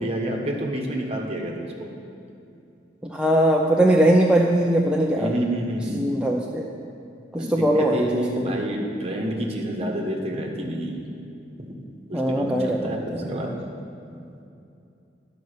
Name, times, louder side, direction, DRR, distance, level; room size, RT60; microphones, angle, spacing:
voice 1, 0.0-1.9 5.1-6.0 7.4-11.0 11.6-11.8 12.1-13.5, right 1 dB, 35° right, 1 dB, 1.2 m, -28 dB
voice 2, 3.0-5.3 5.9-6.7 7.3-8.5 12.1-12.8 13.1-13.5, right 1 dB, 5° right, -1 dB, 0.5 m, -21 dB
11.0 x 5.3 x 6.6 m, 2.6 s
head